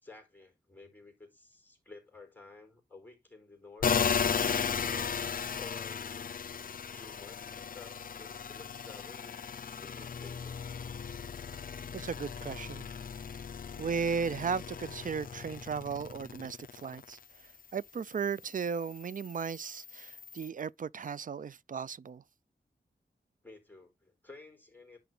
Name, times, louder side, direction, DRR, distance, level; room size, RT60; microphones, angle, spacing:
voice 1, 0.0-5.2 5.6-6.3 6.9-9.4 9.7-10.7 23.4-25.0, left 3 dB, 10° left, 4.4 m, -53 dB
sound 1, 3.8-17.2 17.6-20.5, left 6 dB, 50° left, 0.4 m, -36 dB
voice 2, 11.9-12.9 13.8-17.2 17.7-22.2, right 6 dB, 50° right, 0.4 m, -35 dB
10.5 x 3.9 x 3.9 m
wide cardioid pair, 100°, 18 cm